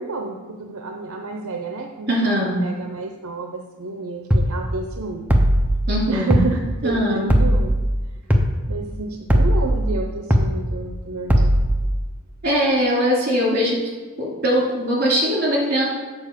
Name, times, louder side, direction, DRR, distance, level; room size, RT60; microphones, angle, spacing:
voice 1, 0.0-5.3 6.1-7.7 8.7-11.6, right 3 dB, 70° right, 3 dB, 0.7 m, -30 dB
voice 2, 2.1-2.6 5.9-6.4 6.8-7.3 12.4-13.8 14.2-15.9, equal, 45° right, -4 dB, 2.7 m, -21 dB
sound 1, 4.3-4.5 5.3-5.7 6.3-6.5 7.3-7.7 8.3-8.5 9.3-9.7 10.3-10.5 11.3-11.7, equal, 5° right, 0.6 m, -16 dB
7.1 x 4.9 x 6.6 m, 1.4 s
head